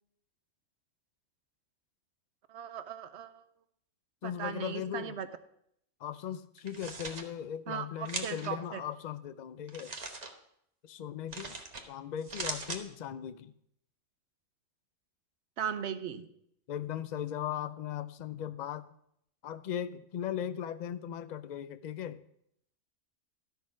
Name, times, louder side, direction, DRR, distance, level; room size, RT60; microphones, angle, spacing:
voice 1, 2.5-3.3 4.2-5.3 7.7-8.8 15.6-16.3, right 8 dB, 65° right, 12 dB, 0.9 m, -38 dB
voice 2, 4.2-5.2 6.0-9.9 10.8-11.6 11.9-13.5 16.7-18.9 19.4-22.2, left 9 dB, 65° left, 13 dB, 0.4 m, -38 dB
sound 1, 6.6-7.2 8.1-8.5 9.7-10.3 11.3-11.8 12.2-12.8, right 3 dB, 35° right, 1.1 m, -39 dB
12.5 x 6.3 x 4.9 m, 0.73 s
omnidirectional pair, 1.3 m